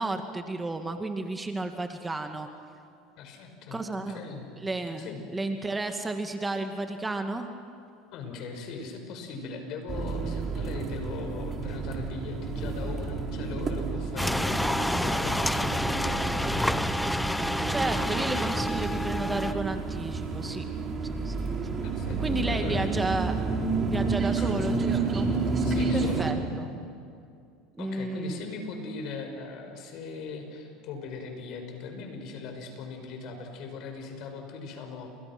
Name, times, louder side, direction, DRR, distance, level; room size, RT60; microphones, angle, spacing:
voice 1, 0.0-2.5 3.7-4.2 4.6-7.5 17.7-20.7 21.2-21.4 22.2-23.4 23.9-25.3 25.9-26.7 27.8-28.4, right 2 dB, 15° right, 6 dB, 2.2 m, -32 dB
voice 2, 3.2-4.5 5.0-5.2 8.1-16.8 21.8-22.9 24.3-24.6 25.6-26.3 27.8-35.1, left 4 dB, 60° left, 5 dB, 6.2 m, -39 dB
sound 1, 9.9-26.3, right 4 dB, 30° right, 4.1 m, -30 dB
sound 2, 14.2-19.5, left 1 dB, 5° left, 0.7 m, -28 dB
30.0 x 28.0 x 6.2 m, 2.4 s
hypercardioid pair, 85°, 0 cm